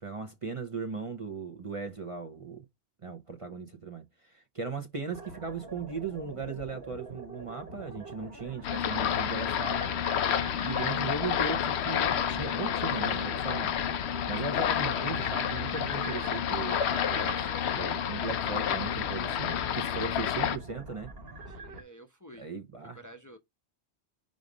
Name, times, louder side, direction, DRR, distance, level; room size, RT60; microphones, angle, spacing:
voice 1, 0.0-2.6 3.0-9.9 10.6-13.7 14.3-21.1 22.4-23.0, right 4 dB, 35° right, 0.8 m, -38 dB
sound 1, 5.1-21.8, right 3 dB, 60° right, 1.5 m, -45 dB
sound 2, 8.6-20.6, left 9 dB, 80° left, 0.9 m, -30 dB
voice 2, 21.5-22.5 22.9-23.4, right 1 dB, 20° left, 0.8 m, -51 dB
5.2 x 4.9 x 3.9 m
omnidirectional pair, 1.1 m